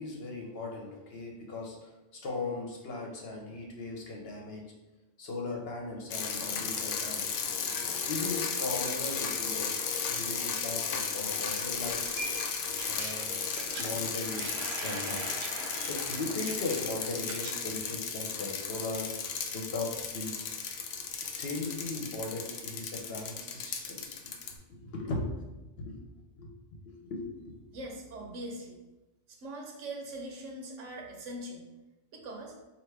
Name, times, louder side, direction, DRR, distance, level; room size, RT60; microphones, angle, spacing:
voice 1, 0.0-4.6 5.2-7.3 7.7-12.0 12.9-14.4 14.8-15.3 15.9-20.4 21.2-25.4 25.7-26.0 26.4-26.5 26.9-27.5, left 2 dB, 60° left, 0 dB, 1.0 m, -38 dB
sound 1, 6.1-24.5, left 6 dB, 80° left, 0.9 m, -35 dB
sound 2, 11.1-17.6 17.9-19.1, right 3 dB, 65° right, 0.8 m, -43 dB
voice 2, 27.7-28.8 29.3-31.7 32.1-32.5, right 1 dB, 85° right, 1 dB, 1.2 m, -41 dB
4.4 x 2.9 x 3.3 m, 1.1 s
omnidirectional pair, 1.2 m